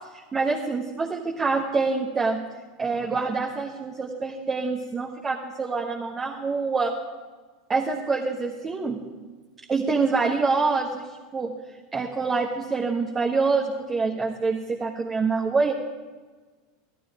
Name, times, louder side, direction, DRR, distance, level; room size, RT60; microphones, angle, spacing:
voice 1, 0.1-2.4 2.8-6.9 7.7-9.0 9.7-11.5 11.9-15.7, right 4 dB, 25° right, -1 dB, 1.4 m, -26 dB
14.0 x 12.5 x 4.9 m, 1.4 s
figure-of-eight pair, 80°, 0 cm